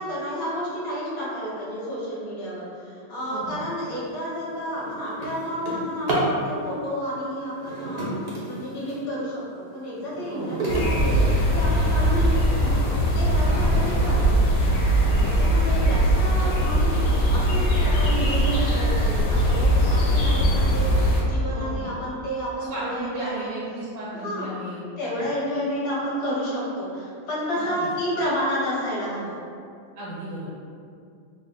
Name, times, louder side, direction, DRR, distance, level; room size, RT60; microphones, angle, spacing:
voice 1, 0.0-12.8 13.1-14.4 15.2-23.6 24.1-24.5 25.0-29.4, equal, 60° left, -7 dB, 1.3 m, -30 dB
voice 2, 3.3-3.7 10.3-10.7 13.5-14.1 15.1-15.3 21.5-21.9 22.7-24.8 25.1-25.3 27.6-27.9 30.0-30.5, right 1 dB, 80° right, -5 dB, 1.2 m, -35 dB
Drawer open or close, 3.7-3.9 4.4-6.4 7.5-9.1 9.6-12.0 12.7-12.8 13.3-13.4 13.7-14.1, right 2 dB, 60° right, 0.6 m, -31 dB
sound 1, 10.7-21.2, equal, 80° left, 1.3 m, -20 dB
3.8 x 2.1 x 3.6 m, 2.3 s
omnidirectional pair, 1.9 m